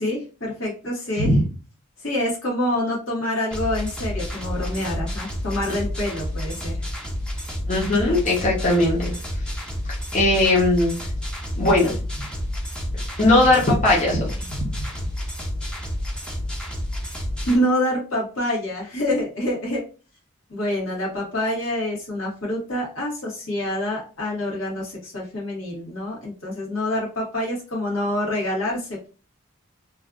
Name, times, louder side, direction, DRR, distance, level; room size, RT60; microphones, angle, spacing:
voice 1, 0.0-1.3 2.0-6.8 17.4-19.8 20.5-29.1, left 1 dB, 80° left, -4 dB, 1.6 m, -26 dB
sound 1, 3.5-17.6, left 1 dB, 5° left, 0.6 m, -30 dB
voice 2, 7.7-9.0 10.1-10.9 11.5-11.9 13.2-14.3 14.6-14.7, left 2 dB, 35° left, -5 dB, 0.8 m, -18 dB
3.2 x 2.4 x 2.4 m, 0.35 s
head